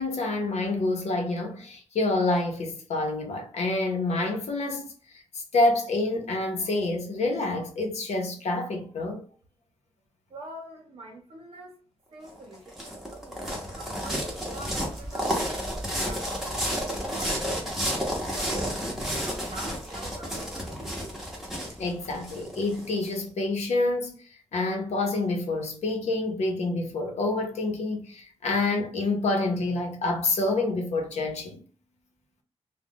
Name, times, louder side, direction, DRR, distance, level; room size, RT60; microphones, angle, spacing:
voice 1, 0.0-4.9 5.1-9.2 21.8-24.2 24.5-31.6, left 2 dB, 80° left, 0.8 m, -27 dB
voice 2, 10.3-11.8 12.1-13.4 13.7-15.4 15.9-16.7 17.0-21.2, right 1 dB, 60° right, 0.6 m, -45 dB
sound 1, 12.3-23.1, equal, 5° right, 0.9 m, -31 dB
2.4 x 2.2 x 3.5 m
wide cardioid pair, 130°, 11 cm